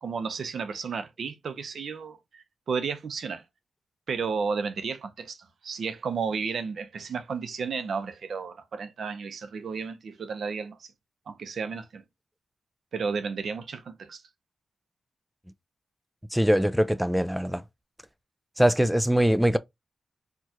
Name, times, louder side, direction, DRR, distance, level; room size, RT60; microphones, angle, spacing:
voice 1, 0.0-3.4 4.1-5.4 5.6-10.9 11.3-12.0 12.9-14.2, right 5 dB, 80° right, 0.7 m, -33 dB
voice 2, 16.3-17.6 18.6-19.6, equal, ahead, 0.3 m, -22 dB
4.5 x 2.4 x 2.7 m
wide cardioid pair, 135°, 0 cm